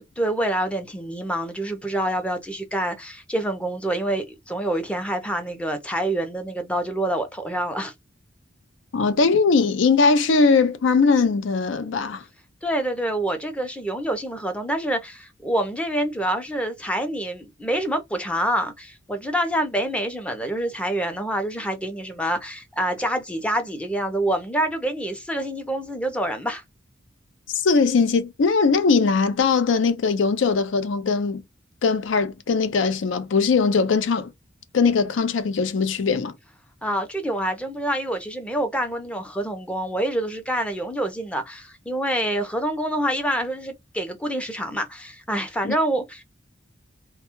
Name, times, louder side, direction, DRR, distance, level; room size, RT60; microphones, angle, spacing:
voice 1, 0.0-7.9 12.6-26.6 36.8-46.2, right 1 dB, 5° left, 0.5 m, -26 dB
voice 2, 8.9-12.2 27.5-31.4 31.8-34.3 34.7-36.3 45.6-45.8, left 4 dB, 70° left, 0.5 m, -20 dB
2.2 x 2.0 x 2.9 m
head